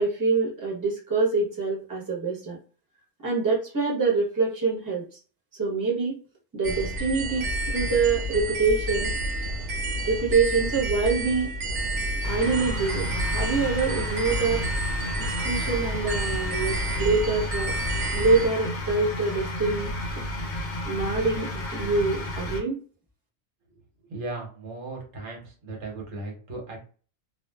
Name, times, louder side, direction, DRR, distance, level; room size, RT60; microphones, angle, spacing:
voice 1, 0.0-2.6 3.2-5.2 5.6-6.1 6.5-9.1 10.1-11.5 12.3-14.6 15.2-17.7 18.1-19.9 20.8-22.8, right 4 dB, 20° right, -4 dB, 0.8 m, -25 dB
sound 1, 6.6-18.5, right 1 dB, 70° right, 1.0 m, -29 dB
sound 2, 12.2-22.6, left 1 dB, 50° left, 0.6 m, -33 dB
voice 2, 24.1-26.8, right 2 dB, 90° right, 0 dB, 1.2 m, -36 dB
2.4 x 2.3 x 2.2 m, 0.40 s
omnidirectional pair, 1.3 m